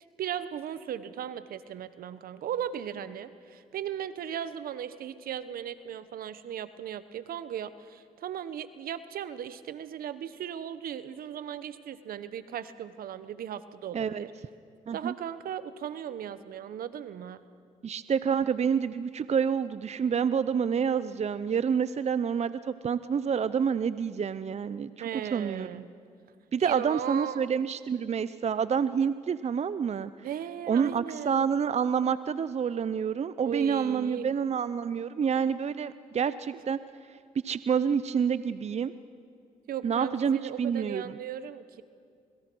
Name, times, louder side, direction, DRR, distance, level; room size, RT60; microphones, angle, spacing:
voice 1, 0.2-14.3 14.9-17.4 25.0-25.9 26.6-27.5 30.2-31.5 33.4-34.3 39.7-41.8, right 9 dB, 75° right, 14 dB, 1.0 m, -37 dB
voice 2, 13.9-14.2 14.9-15.1 17.8-25.8 26.5-30.1 30.7-36.8 37.4-38.9 39.8-41.2, right 7 dB, 45° right, 14 dB, 0.7 m, -28 dB
27.5 x 21.5 x 6.2 m, 2.3 s
supercardioid pair, 55°, 15 cm